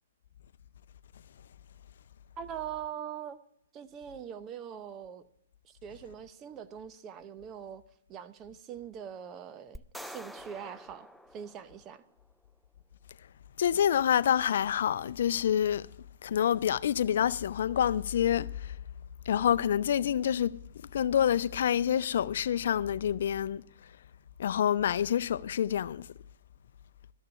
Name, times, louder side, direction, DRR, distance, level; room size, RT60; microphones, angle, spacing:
voice 1, 2.4-3.4 3.7-5.2 5.6-7.8 8.1-12.0, right 9 dB, 25° right, 0.8 m, -42 dB
sound 1, 9.7-12.1, equal, ahead, 0.4 m, -47 dB
voice 2, 13.6-15.9 16.2-18.7 19.3-20.5 20.9-23.6 24.4-26.0, left 9 dB, 65° left, 0.5 m, -27 dB
13.0 x 6.7 x 9.5 m
hypercardioid pair, 135°, 0 cm